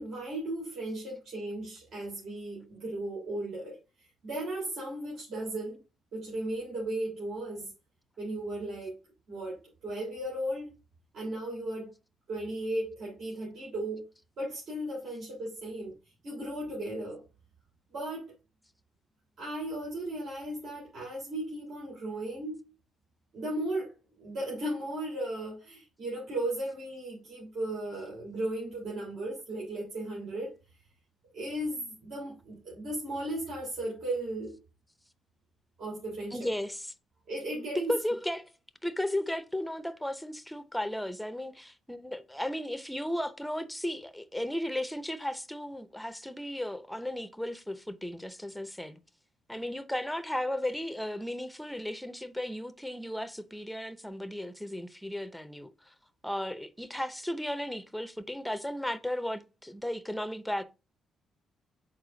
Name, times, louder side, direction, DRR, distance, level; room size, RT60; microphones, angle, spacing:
voice 1, 0.0-3.8 4.2-5.8 6.1-7.7 8.2-8.9 9.3-10.7 11.1-11.9 12.3-14.0 14.4-15.9 16.2-17.2 17.9-18.3 19.4-22.6 23.3-23.9 24.2-30.5 31.3-34.5 35.8-36.5 37.3-37.9, right 1 dB, 65° right, 3.5 m, -36 dB
voice 2, 36.3-36.9 37.7-38.5 38.8-49.0 49.5-55.9 56.2-60.6, left 1 dB, ahead, 0.6 m, -35 dB
6.6 x 4.4 x 3.9 m
cardioid pair, 90°, 0 cm